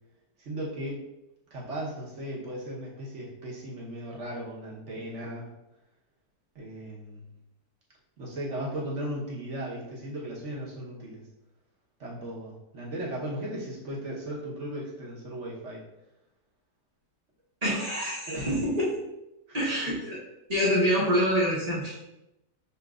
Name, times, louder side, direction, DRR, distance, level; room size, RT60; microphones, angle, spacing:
voice 1, 0.4-1.0 1.5-5.5 6.5-7.3 8.2-11.2 12.0-15.8 18.3-18.6 19.5-19.6, right 1 dB, 55° right, -4 dB, 1.2 m, -36 dB
voice 2, 17.6-18.9 19.5-20.2 20.5-22.1, equal, 30° right, -6 dB, 1.0 m, -26 dB
6.6 x 2.9 x 2.4 m, 0.90 s
omnidirectional pair, 1.6 m